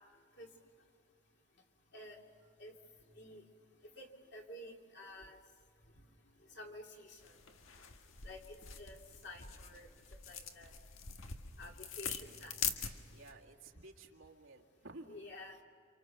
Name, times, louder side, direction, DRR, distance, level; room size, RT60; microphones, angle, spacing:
voice 1, 4.0-5.4 6.5-7.4 8.2-9.0 9.2-9.9 10.3-10.7 11.6-12.6 15.1-15.6, left 1 dB, 55° left, 0 dB, 2.8 m, -51 dB
sound 1, 7.2-13.3, left 7 dB, 85° left, 1.6 m, -44 dB
voice 2, 13.1-15.2, right 2 dB, 85° right, 0 dB, 2.1 m, -54 dB
29.0 x 27.0 x 6.7 m, 2.2 s
head